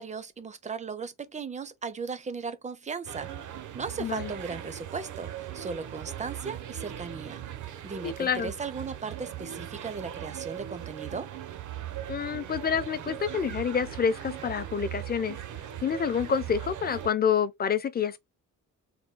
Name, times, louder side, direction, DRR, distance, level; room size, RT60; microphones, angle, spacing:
voice 1, 0.0-3.3 3.7-11.3, right 5 dB, 25° right, 0.4 m, -37 dB
sound 1, 3.0-17.1, right 11 dB, 70° right, 0.6 m, -39 dB
voice 2, 4.0-4.3 8.0-8.5 12.1-15.4 15.8-18.2, left 7 dB, 30° left, 0.4 m, -28 dB
3.6 x 2.2 x 3.8 m
wide cardioid pair, 165°, 32 cm